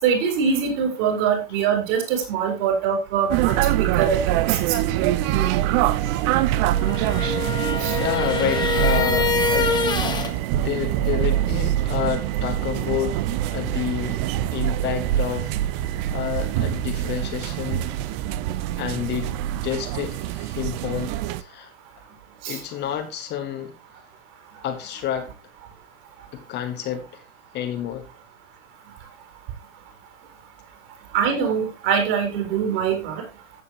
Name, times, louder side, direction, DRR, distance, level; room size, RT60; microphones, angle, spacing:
voice 1, 0.0-5.0 7.8-8.0 22.4-22.6 31.1-33.2, right 7 dB, 45° right, 4.7 m, -23 dB
sound 1, 3.3-21.4, right 13 dB, 25° right, 0.4 m, -24 dB
sound 2, 6.7-10.3, left 5 dB, 10° left, 1.5 m, -25 dB
voice 2, 8.0-13.2 13.5-14.2 14.5-15.6 16.1-17.8 18.3-18.4 18.8-19.3 19.6-21.7 22.5-23.7 24.6-25.3 26.3-27.2 27.5-28.1, left 10 dB, 25° left, 1.4 m, -29 dB
14.0 x 8.1 x 3.0 m
figure-of-eight pair, 100°, 40 cm